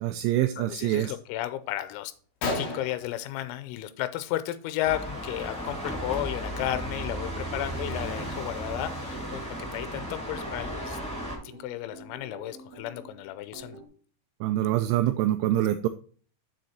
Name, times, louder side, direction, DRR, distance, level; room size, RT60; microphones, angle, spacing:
voice 1, 0.0-1.1 14.4-15.9, right 13 dB, 85° right, 10 dB, 2.8 m, -25 dB
voice 2, 0.6-2.1 2.5-9.4 9.7-11.0 11.5-13.8, left 13 dB, 85° left, 12 dB, 3.4 m, -33 dB
Gunshot gunfire, 2.1-2.2 2.4-4.0 4.3-4.7 5.0-5.2 6.0-6.2 6.7-6.8 7.2-8.8, left 3 dB, 55° left, 2.8 m, -36 dB
sound 1, 4.8-11.4, equal, ahead, 1.6 m, -35 dB
sound 2, 6.5-13.9, right 2 dB, 50° right, 2.1 m, -48 dB
7.6 x 6.4 x 4.2 m, 0.43 s
omnidirectional pair, 5.9 m